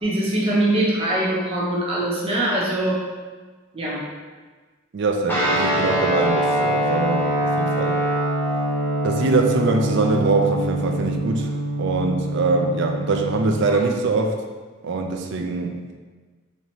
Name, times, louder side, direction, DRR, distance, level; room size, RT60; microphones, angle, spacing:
voice 1, 0.0-3.0 3.7-4.1, right 1 dB, 25° right, -6 dB, 0.8 m, -22 dB
voice 2, 4.9-8.0 9.0-11.5 11.8-14.4 14.8-16.0, right 3 dB, 55° right, 4 dB, 0.4 m, -23 dB
Guitar, 5.3-13.8, right 1 dB, 10° left, 0.6 m, -24 dB
4.6 x 2.9 x 2.8 m, 1.4 s
head